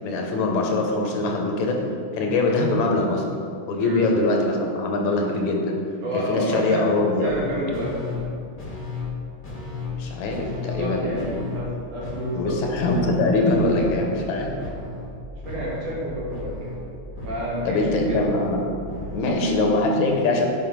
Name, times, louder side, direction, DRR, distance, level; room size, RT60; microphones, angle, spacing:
voice 1, 0.0-1.8 2.1-3.3 3.7-5.8 6.1-7.4 9.9-11.2 12.3-14.5 17.7-18.6 19.1-20.5, left 2 dB, 80° left, 1 dB, 2.2 m, -22 dB
voice 2, 3.8-4.1 6.0-6.9 7.2-8.4 10.6-12.6 15.4-16.8 17.2-18.3, equal, 90° right, -5 dB, 3.2 m, -29 dB
sound 1, 7.2-7.4 7.7-8.3 8.6-9.2 9.4-10.0 10.3-10.9 11.1-11.7 12.0-12.6 12.9-13.5 13.7-14.3 14.6-15.2 15.4-19.3, left 3 dB, 30° left, 1.0 m, -34 dB
7.7 x 5.1 x 5.1 m, 2.4 s
omnidirectional pair, 3.4 m